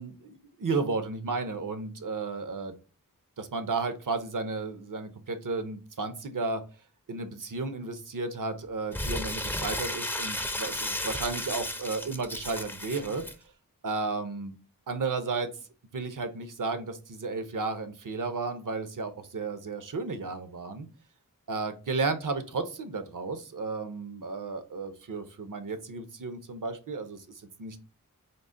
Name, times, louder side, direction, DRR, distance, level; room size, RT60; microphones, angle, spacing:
voice 1, 0.0-2.7 3.4-6.6 7.1-13.2 13.8-14.5 14.9-15.5 15.9-20.9 21.5-27.2 27.6-27.8, right 4 dB, 65° right, 9 dB, 0.6 m, -33 dB
Crumpling crinkling, 8.9-13.3, left 1 dB, 5° left, 0.4 m, -34 dB
3.7 x 2.1 x 3.7 m, 0.33 s
wide cardioid pair, 55°, 34 cm